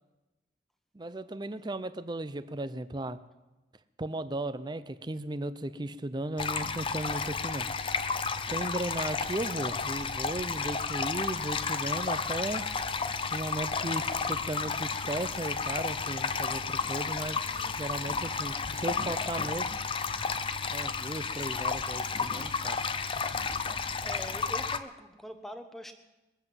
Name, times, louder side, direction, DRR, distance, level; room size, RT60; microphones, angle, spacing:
voice 1, 0.9-3.2 4.0-7.7 8.4-12.7 13.3-17.5 17.8-19.8 20.7-22.9, right 2 dB, 25° right, 13 dB, 0.5 m, -36 dB
sound 1, 6.4-24.8, left 5 dB, 25° left, 0.5 m, -32 dB
voice 2, 24.0-25.9, equal, ahead, 7 dB, 1.0 m, -43 dB
21.5 x 7.9 x 7.5 m, 1.1 s
head